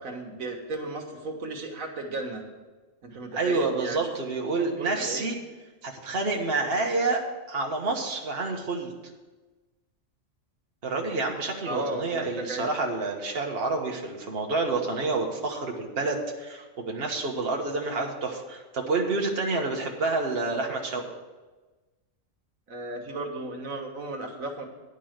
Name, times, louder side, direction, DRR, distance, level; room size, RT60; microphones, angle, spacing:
voice 1, 0.0-2.4 3.0-4.1 4.7-5.3 11.6-12.7 22.7-24.6, right 2 dB, 90° right, 2 dB, 1.7 m, -35 dB
voice 2, 3.3-5.4 5.8-8.9 10.8-21.1, right 3 dB, 50° right, 1 dB, 1.4 m, -28 dB
10.0 x 5.4 x 7.9 m, 1.2 s
omnidirectional pair, 1.4 m